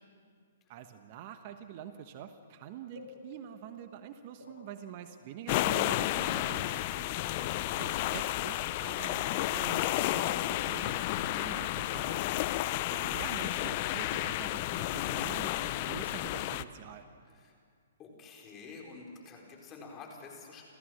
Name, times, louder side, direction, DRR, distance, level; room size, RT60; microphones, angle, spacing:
voice 1, 0.7-7.1 7.8-12.3 12.9-17.0, right 10 dB, 45° right, 9 dB, 1.1 m, -46 dB
sound 1, 3.0-6.0 7.4-9.4 10.1-10.3, left 4 dB, 75° left, 2.8 m, -53 dB
sound 2, 5.5-16.6, left 15 dB, 40° left, 0.6 m, -32 dB
voice 2, 18.0-20.6, left 4 dB, 25° left, 0 dB, 4.5 m, -50 dB
29.5 x 14.0 x 6.5 m, 2.2 s
hypercardioid pair, 125°, 0 cm